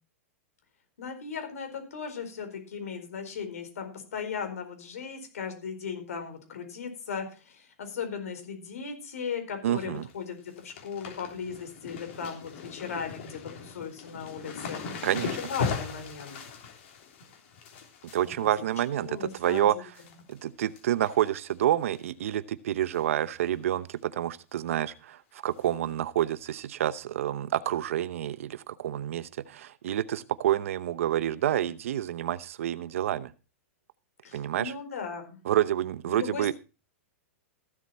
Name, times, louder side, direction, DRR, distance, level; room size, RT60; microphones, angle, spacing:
voice 1, 1.0-15.1 15.4-16.4 18.2-18.5 19.0-19.8 34.2-35.4 36.1-36.5, left 6 dB, 90° left, 6 dB, 4.5 m, -37 dB
voice 2, 9.6-10.1 15.0-15.4 18.1-19.9 20.3-33.3 34.3-34.7 35.5-36.5, right 12 dB, 65° right, 16 dB, 0.8 m, -28 dB
sound 1, 9.8-10.1 10.4-19.6 19.9-20.4 20.7-21.5 21.9-22.0 22.9-23.2 23.4-23.5 23.9-24.0 25.6-25.7 26.5-26.6, left 5 dB, 55° left, 3.3 m, -39 dB
14.5 x 7.8 x 4.2 m, 0.32 s
supercardioid pair, 165°, 8 cm